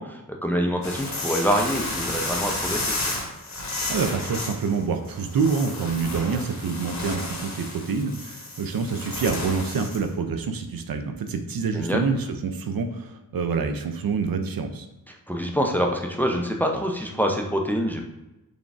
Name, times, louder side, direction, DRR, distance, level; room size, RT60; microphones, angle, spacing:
voice 1, 0.0-2.9 11.7-12.0 15.1-18.1, equal, 5° left, 2 dB, 0.5 m, -25 dB
sound 1, 0.8-10.1, left 2 dB, 50° left, 1.0 m, -32 dB
voice 2, 3.9-14.9, right 5 dB, 65° right, 6 dB, 0.5 m, -27 dB
3.7 x 3.4 x 2.4 m, 0.99 s
cardioid pair, 60°, 37 cm